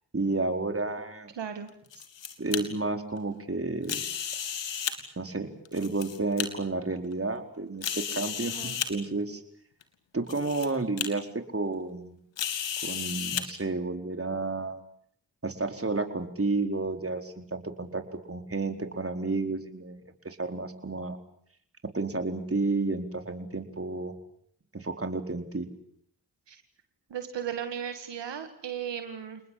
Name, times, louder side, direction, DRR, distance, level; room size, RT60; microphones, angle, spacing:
voice 1, 0.1-1.3 2.4-4.0 5.2-8.6 8.9-9.4 10.1-11.3 11.5-12.2 12.8-14.8 15.4-18.0 18.3-21.2 21.9-24.1 24.7-25.7, right 3 dB, 30° right, 6 dB, 4.5 m, -31 dB
voice 2, 1.4-1.7 8.4-8.8 26.5-26.6 27.1-29.4, right 8 dB, 80° right, 7 dB, 2.3 m, -36 dB
sound 1, 1.7-2.6 3.8-5.0 5.7-6.5 7.1-7.2 7.8-8.9 9.8-9.9 10.3-10.7 11.0-11.1 12.4-13.4, left 8 dB, 90° left, 2.5 m, -33 dB
29.0 x 20.0 x 8.6 m, 0.66 s
supercardioid pair, 45°, 43 cm